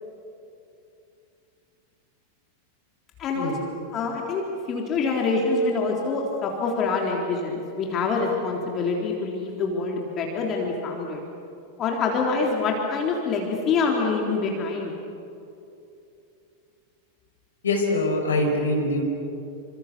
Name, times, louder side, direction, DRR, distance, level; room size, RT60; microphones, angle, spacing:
voice 1, 3.2-3.5 3.9-4.4 4.7-11.2 11.8-14.9, left 4 dB, 30° left, 0 dB, 3.6 m, -25 dB
voice 2, 17.6-19.0, left 2 dB, 70° left, 2 dB, 5.6 m, -23 dB
29.0 x 26.5 x 6.9 m, 2.7 s
figure-of-eight pair, 90°, 0 cm